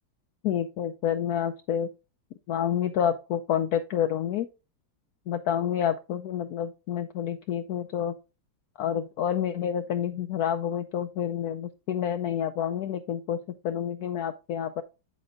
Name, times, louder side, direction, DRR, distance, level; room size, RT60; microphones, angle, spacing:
voice 1, 0.4-1.9 2.5-4.5 5.3-8.1 8.8-13.4 13.6-14.8, left 9 dB, 75° left, 7 dB, 0.9 m, -28 dB
8.5 x 7.1 x 2.5 m, 0.29 s
omnidirectional pair, 2.0 m